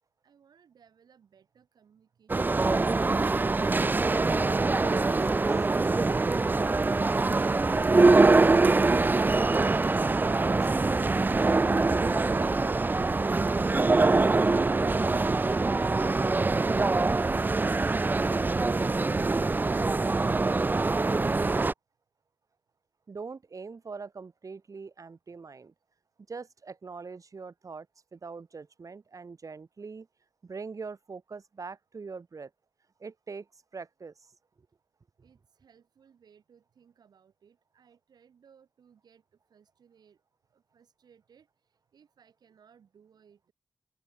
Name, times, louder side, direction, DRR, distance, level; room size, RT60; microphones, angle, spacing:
voice 1, 0.2-3.0 35.2-40.2 40.5-43.5, right 7 dB, 85° right, 5.2 m, -62 dB
sound 1, 2.3-21.7, right 3 dB, 30° right, 0.4 m, -24 dB
voice 2, 4.4-7.1 7.7-9.6 9.9-11.4 11.9-12.8 23.1-25.7 26.3-27.9 28.1-30.1 30.4-32.5 33.0-34.3, right 4 dB, 55° right, 1.2 m, -42 dB
open air
cardioid pair, 40°, 7 cm